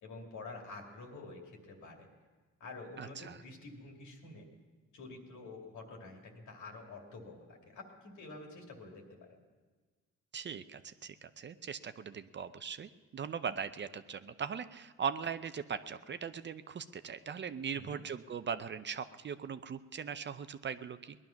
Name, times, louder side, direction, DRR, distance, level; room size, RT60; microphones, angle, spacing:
voice 1, 0.0-2.1 2.6-4.5 4.9-9.4 17.7-18.0, left 3 dB, 75° left, 1 dB, 2.5 m, -48 dB
voice 2, 3.0-3.4 10.3-21.2, right 7 dB, 35° right, 12 dB, 0.6 m, -40 dB
18.5 x 11.0 x 5.8 m, 1.4 s
cardioid pair, 90°, 30 cm